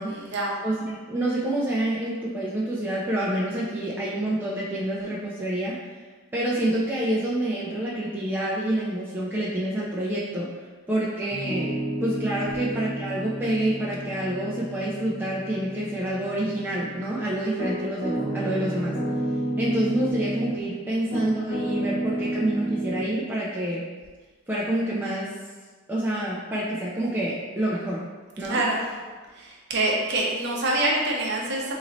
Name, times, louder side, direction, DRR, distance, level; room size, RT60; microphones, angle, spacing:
voice 1, 0.1-0.5 28.5-28.8 29.4-31.7, right 2 dB, 50° right, -2 dB, 0.7 m, -25 dB
voice 2, 0.6-5.8 6.3-10.5 10.9-11.7 12.0-19.0 19.6-23.8 24.5-25.4 25.9-28.0 28.4-28.6, right 1 dB, 10° right, -7 dB, 0.3 m, -27 dB
Piano, 11.3-20.7 21.1-23.1, right 1 dB, 60° left, 1.0 m, -31 dB
4.1 x 3.0 x 2.6 m, 1.4 s
head